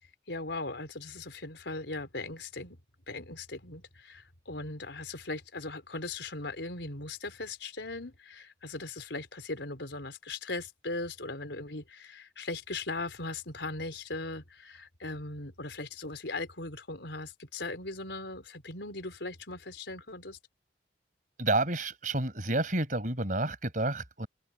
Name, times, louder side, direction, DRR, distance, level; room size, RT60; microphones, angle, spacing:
voice 1, 0.3-2.8 3.1-20.4, left 2 dB, 80° left, 4.3 m, -39 dB
voice 2, 21.4-24.3, right 2 dB, 45° right, 5.0 m, -30 dB
head